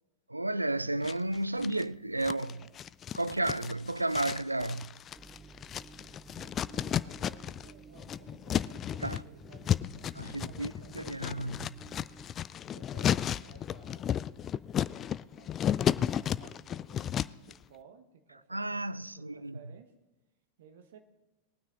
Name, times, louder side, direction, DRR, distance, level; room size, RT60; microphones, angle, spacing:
voice 1, 0.3-2.6 3.2-4.9 9.0-9.2 10.2-11.8 18.5-19.6, right 2 dB, 85° right, 0.3 m, -32 dB
sound 1, 1.0-1.8 2.2-7.7 8.0-17.5, left 10 dB, 25° left, 0.3 m, -33 dB
voice 2, 2.1-2.7 6.3-10.9 12.0-12.1 12.7-14.2 15.3-19.9 20.6-21.0, right 7 dB, 60° right, 1.3 m, -57 dB
sound 2, 5.2-12.2, right 4 dB, 10° right, 0.7 m, -53 dB
20.5 x 9.4 x 3.8 m
figure-of-eight pair, 90°, 0 cm